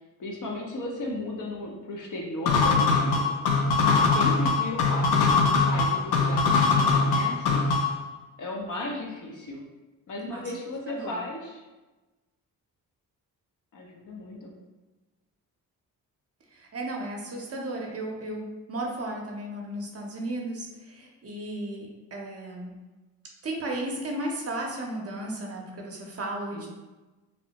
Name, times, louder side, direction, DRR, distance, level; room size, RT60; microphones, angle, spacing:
voice 1, 0.2-3.3 3.9-7.7 8.4-9.6 10.1-11.6 13.7-14.5 26.5-26.7, left 1 dB, 55° left, -1 dB, 0.7 m, -35 dB
sound 1, 2.5-8.0, left 4 dB, 85° left, 0.5 m, -22 dB
voice 2, 10.9-11.2 16.6-22.8 23.4-26.7, right 1 dB, 40° right, 0 dB, 0.7 m, -34 dB
3.0 x 2.0 x 2.8 m, 1.1 s
supercardioid pair, 60°, 38 cm